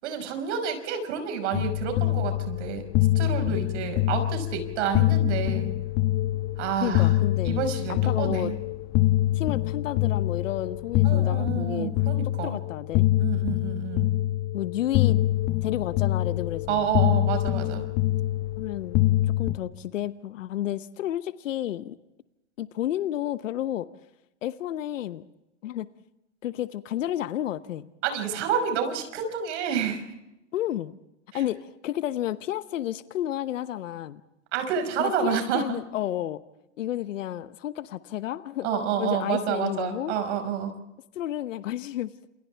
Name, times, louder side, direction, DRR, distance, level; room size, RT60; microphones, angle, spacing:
voice 1, 0.0-2.8 3.2-5.7 6.6-7.1 7.5-8.5 11.0-12.6 13.2-14.1 16.7-17.8 28.0-30.0 31.3-31.4 34.5-35.8 38.6-40.7, right 7 dB, 65° right, 6 dB, 5.7 m, -29 dB
sound 1, 1.5-19.6, left 15 dB, 40° left, 1.3 m, -25 dB
voice 2, 6.8-7.6 7.9-8.5 9.3-12.0 12.2-13.1 14.5-15.2 15.6-16.9 18.6-22.0 22.6-23.9 24.4-25.2 25.6-25.9 26.4-27.9 30.5-30.9 31.3-34.2 35.0-36.4 36.8-38.7 39.0-40.2 41.1-42.1, left 12 dB, 80° left, 13 dB, 1.1 m, -31 dB
29.0 x 28.0 x 3.5 m, 0.91 s
hypercardioid pair, 125°, 38 cm